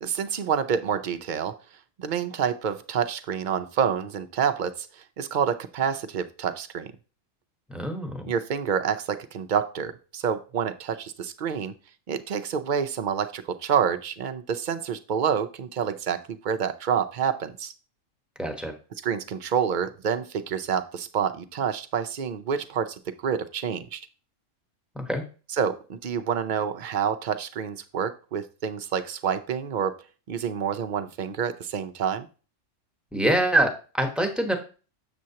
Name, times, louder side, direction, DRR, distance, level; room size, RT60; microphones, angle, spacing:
voice 1, 0.0-1.6 2.0-6.9 8.3-11.7 12.1-17.7 19.0-24.0 25.5-30.0 30.3-32.3, right 7 dB, 55° right, 10 dB, 0.5 m, -28 dB
voice 2, 7.7-8.3 18.4-18.7 24.9-25.2 33.1-34.5, right 1 dB, ahead, 3 dB, 0.9 m, -25 dB
7.5 x 7.0 x 2.8 m, 0.36 s
omnidirectional pair, 1.3 m